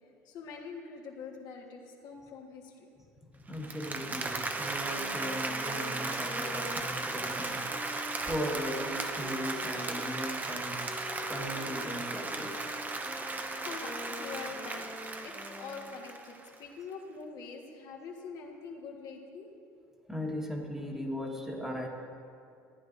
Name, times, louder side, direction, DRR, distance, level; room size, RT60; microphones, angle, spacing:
voice 1, 0.2-2.9 13.6-14.9 15.2-19.5, left 5 dB, 60° left, 1 dB, 1.5 m, -44 dB
voice 2, 3.5-8.0 8.3-12.7 20.1-21.9, equal, 5° right, 0 dB, 1.4 m, -38 dB
Applause, 3.5-16.5, right 3 dB, 20° right, 0.7 m, -36 dB
sound 1, 4.7-10.2 10.8-16.0, left 3 dB, 10° left, 0.5 m, -48 dB
14.0 x 9.4 x 2.6 m, 2.5 s
hypercardioid pair, 75°, 8 cm